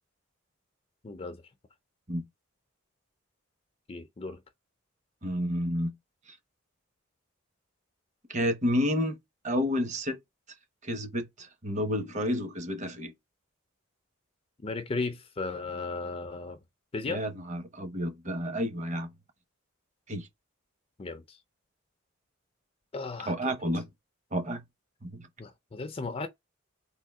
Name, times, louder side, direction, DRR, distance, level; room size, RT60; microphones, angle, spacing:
voice 1, 1.0-1.4 3.9-4.4 14.6-16.6 16.9-17.2 21.0-21.4 22.9-23.5 25.4-26.3, left 3 dB, 30° left, 0.4 m, -35 dB
voice 2, 5.2-5.9 8.3-9.2 9.4-10.2 10.8-13.1 17.1-19.1 20.1-20.3 23.3-23.9 24.3-24.6 25.0-25.3, equal, 35° right, 1.0 m, -30 dB
3.7 x 2.6 x 4.7 m
head